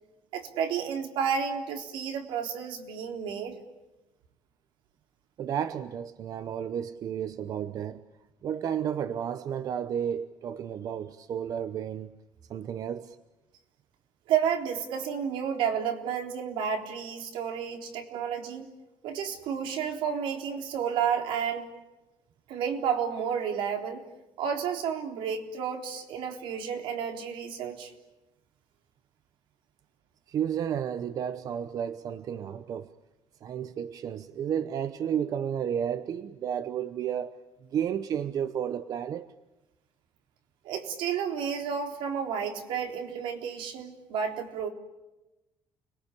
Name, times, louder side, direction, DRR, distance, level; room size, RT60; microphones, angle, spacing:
voice 1, 0.3-3.6 14.3-18.7 19.0-21.7 22.5-24.0 24.4-27.9 40.6-44.7, right 7 dB, 85° right, 3.8 m, -31 dB
voice 2, 5.4-8.0 8.4-12.1 12.5-13.2 30.3-32.9 33.4-37.3 37.7-39.3, right 9 dB, 45° right, 0.9 m, -32 dB
30.0 x 22.0 x 8.5 m
cardioid pair, 170°, 8 cm